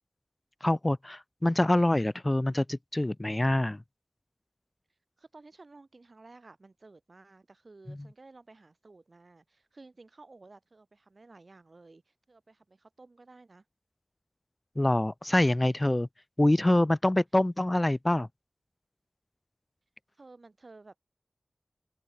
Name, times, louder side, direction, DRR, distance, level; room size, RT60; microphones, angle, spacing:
voice 1, 0.6-3.8 7.9-8.0 14.8-16.1 16.4-18.3, left 1 dB, 30° left, 0.4 m, -25 dB
voice 2, 5.2-13.6 20.2-21.0, right 3 dB, 65° right, 5.3 m, -54 dB
open air
cardioid pair, 40°, 0 cm